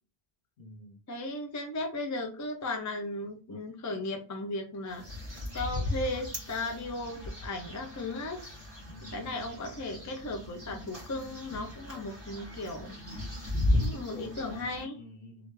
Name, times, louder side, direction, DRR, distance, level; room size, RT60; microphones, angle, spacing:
voice 1, 0.6-1.0 8.9-9.4 13.9-14.7 14.9-15.5, left 1 dB, 70° left, 1.1 m, -47 dB
voice 2, 1.1-5.0 5.5-8.4 9.1-12.9 13.7-15.0, left 2 dB, 25° left, 0.4 m, -36 dB
sound 1, 4.9-14.8, left 1 dB, 15° right, 1.8 m, -36 dB
3.2 x 2.5 x 3.1 m
omnidirectional pair, 1.0 m